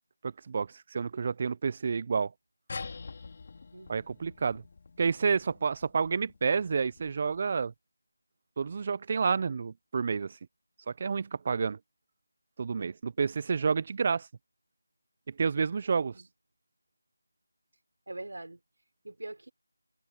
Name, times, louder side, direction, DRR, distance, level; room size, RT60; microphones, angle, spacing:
voice 1, 0.2-2.3 3.9-4.6 5.0-7.7 8.6-10.4 10.9-11.8 12.6-14.3 15.3-16.1, right 5 dB, 30° right, 0.4 m, -29 dB
sound 1, 2.7-7.6, left 4 dB, 35° left, 2.5 m, -46 dB
voice 2, 3.7-4.1 15.9-16.3 18.1-18.6 19.0-19.5, right 2 dB, 75° right, 3.8 m, -43 dB
figure-of-eight pair, 170°, 0 cm